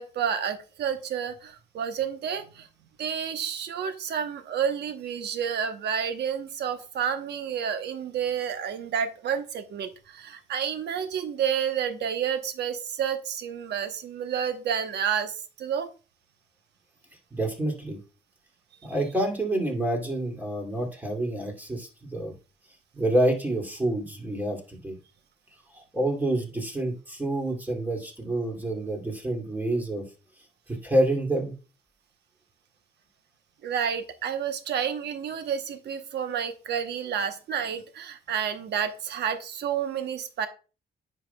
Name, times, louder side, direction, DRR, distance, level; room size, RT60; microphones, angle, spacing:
voice 1, 0.0-2.7 3.0-15.9 33.6-40.5, right 8 dB, 80° right, 8 dB, 1.0 m, -30 dB
voice 2, 17.3-18.0 18.8-22.3 22.9-25.0 25.9-30.0 30.8-31.5, right 1 dB, 10° right, 1 dB, 2.5 m, -27 dB
9.7 x 5.8 x 2.3 m, 0.34 s
cardioid pair, 100°, 17 cm